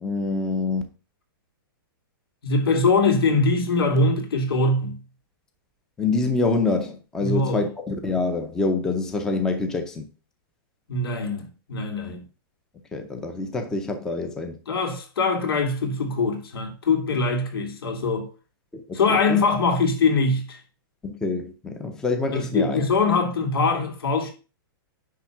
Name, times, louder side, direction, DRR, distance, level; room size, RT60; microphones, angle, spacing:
voice 1, 0.0-0.8 6.0-10.0 12.0-12.1 12.9-14.6 18.7-19.2 21.0-22.8, left 3 dB, 5° left, 0.6 m, -26 dB
voice 2, 2.4-5.0 7.2-7.7 10.9-12.2 14.7-18.3 18.9-20.6 22.3-24.3, left 3 dB, 90° left, 2.8 m, -22 dB
10.0 x 3.5 x 6.0 m
supercardioid pair, 180°, 12 cm